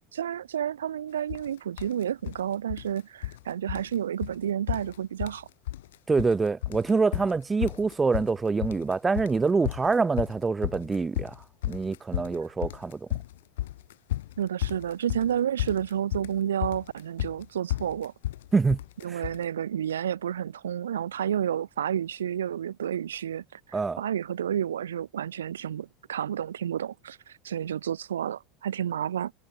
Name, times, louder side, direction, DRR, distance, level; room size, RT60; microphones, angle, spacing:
voice 1, 0.1-5.5 14.4-18.1 19.0-29.3, right 9 dB, 75° right, 0.9 m, -30 dB
sound 1, 1.3-1.5 1.8-2.4 2.7-3.4 3.7-3.9 4.2-4.4 4.7-5.4 5.7-6.3 6.6-19.4, left 14 dB, 70° left, 0.5 m, -33 dB
voice 2, 6.1-11.4 11.6-13.1 18.5-18.8 19.1-19.2 23.7-24.0, right 4 dB, 20° right, 0.9 m, -25 dB
figure-of-eight pair, 75°, 0 cm